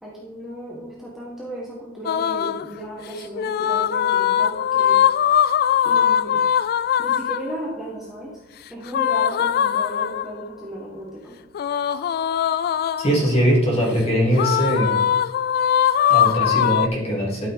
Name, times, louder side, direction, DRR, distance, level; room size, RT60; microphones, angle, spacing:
voice 1, 0.0-5.0 5.8-6.4 7.0-8.4 8.7-11.3, right 1 dB, ahead, -6 dB, 1.7 m, -34 dB
sound 1, 2.1-2.7 3.4-7.5 8.9-10.4 11.5-13.3 14.4-16.9, left 9 dB, 45° left, 0.3 m, -21 dB
voice 2, 13.0-14.9 16.1-17.5, equal, 30° left, -3 dB, 2.9 m, -21 dB
12.0 x 6.3 x 3.8 m, 1.0 s
head